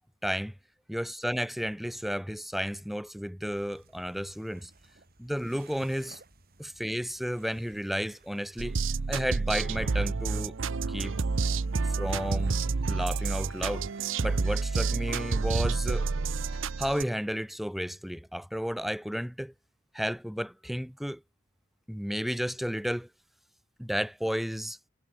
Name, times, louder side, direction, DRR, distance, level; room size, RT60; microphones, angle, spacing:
voice 1, 0.2-0.5 0.9-4.7 5.2-6.2 6.6-8.8 9.1-10.5 10.9-11.2 12.0-12.6 12.9-13.9 14.2-16.1 16.8-19.5 19.9-21.2 21.9-23.1 23.8-24.8, equal, ahead, 0.7 m, -32 dB
sound 1, 3.4-15.6, right 3 dB, 50° right, 3.9 m, -59 dB
sound 2, 8.6-17.0, right 4 dB, 70° right, 0.7 m, -29 dB
head